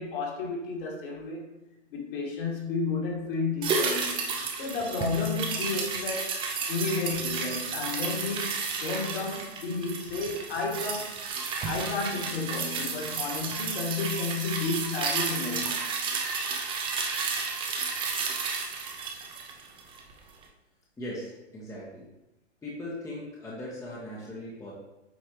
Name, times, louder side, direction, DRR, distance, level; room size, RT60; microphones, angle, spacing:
voice 1, 0.0-1.5 1.9-4.3 4.6-6.4 6.7-11.1 11.6-15.8, left 4 dB, 50° left, -2 dB, 2.3 m, -32 dB
sound 1, 3.6-20.1 20.4-20.5, right 5 dB, 15° right, 0.6 m, -32 dB
voice 2, 21.0-22.1 22.6-24.7, left 1 dB, 10° left, -6 dB, 1.2 m, -39 dB
8.5 x 4.5 x 3.0 m, 0.97 s
hypercardioid pair, 120°, 36 cm